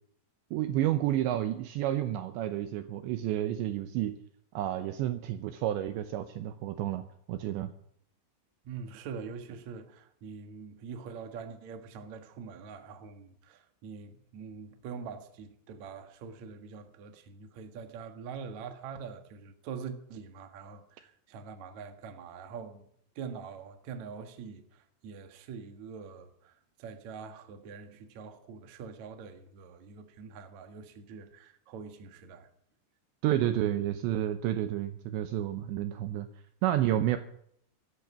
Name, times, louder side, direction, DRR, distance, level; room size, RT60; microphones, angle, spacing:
voice 1, 0.5-4.2 4.5-7.7 33.2-36.3 36.6-37.2, right 12 dB, 80° right, 2.8 m, -30 dB
voice 2, 8.6-22.8 23.2-32.5, right 6 dB, 60° right, 1.9 m, -44 dB
16.5 x 13.5 x 6.2 m
omnidirectional pair, 5.8 m